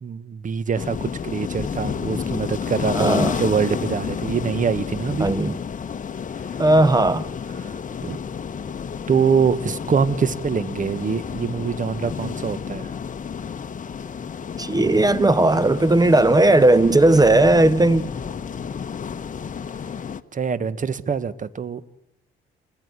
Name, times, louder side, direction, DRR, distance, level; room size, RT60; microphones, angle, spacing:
voice 1, 0.0-5.3 7.6-8.2 9.1-12.9 20.3-21.8, right 6 dB, 40° right, 1.5 m, -24 dB
sound 1, 0.7-20.2, left 6 dB, 40° left, 1.2 m, -31 dB
voice 2, 2.9-3.4 5.2-5.6 6.6-7.3 14.6-18.1, right 2 dB, 20° right, 1.0 m, -16 dB
27.5 x 20.5 x 9.8 m
cardioid pair, 90°, 20 cm